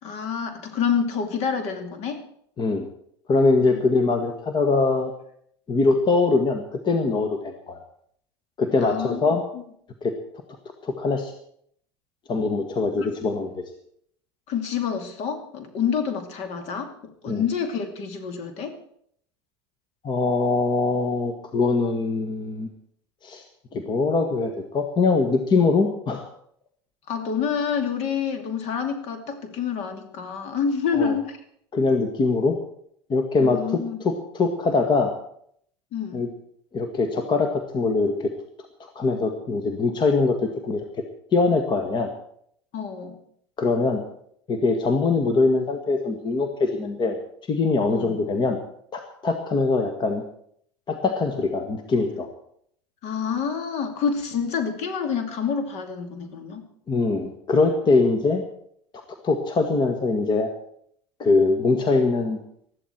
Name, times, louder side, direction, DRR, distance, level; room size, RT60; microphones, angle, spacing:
voice 1, 0.0-2.2 3.6-3.8 8.8-9.2 13.0-13.1 14.5-18.7 27.1-31.4 33.4-34.0 35.9-36.2 42.7-43.2 47.9-48.2 53.0-56.7, left 6 dB, 50° left, 6 dB, 2.6 m, -28 dB
voice 2, 3.3-5.1 5.7-7.8 8.6-9.4 10.0-10.1 10.8-11.3 12.3-13.6 17.3-17.4 20.0-22.7 23.2-23.4 23.7-26.3 30.9-31.2 31.7-32.6 33.1-35.1 36.1-36.3 36.7-38.3 38.8-40.8 41.3-42.1 43.6-44.0 44.5-47.2 47.5-48.6 48.9-50.2 50.9-52.3 56.9-58.4 59.2-60.5 61.2-62.4, left 3 dB, 35° left, 6 dB, 1.8 m, -22 dB
20.0 x 13.5 x 4.5 m, 0.68 s
hypercardioid pair, 80°, 14 cm